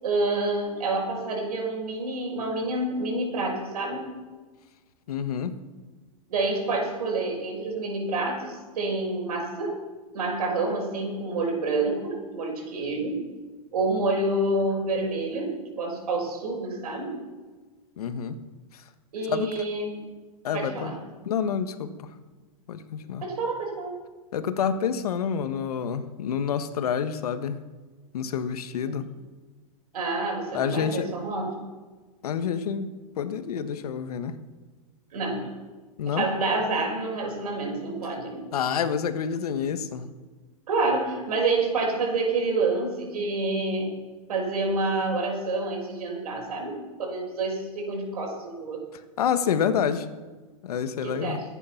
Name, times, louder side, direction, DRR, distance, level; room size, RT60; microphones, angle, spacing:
voice 1, 0.0-4.0 6.3-9.8 10.1-13.2 13.7-17.1 19.1-20.0 20.5-21.0 23.2-24.0 29.9-31.6 35.1-35.4 36.1-38.4 40.7-43.9 44.3-48.8 51.0-51.4, right 2 dB, 80° right, 1 dB, 6.2 m, -28 dB
voice 2, 5.1-5.6 18.0-18.4 18.7-18.8 19.3-19.6 20.4-20.9 21.2-21.9 22.7-23.2 24.3-27.6 28.1-29.0 30.5-31.1 32.2-34.3 36.0-36.2 38.5-40.1 48.9-50.1 50.6-51.4, left 7 dB, 80° left, 10 dB, 1.5 m, -28 dB
23.5 x 10.0 x 5.9 m, 1.3 s
supercardioid pair, 175°, 19 cm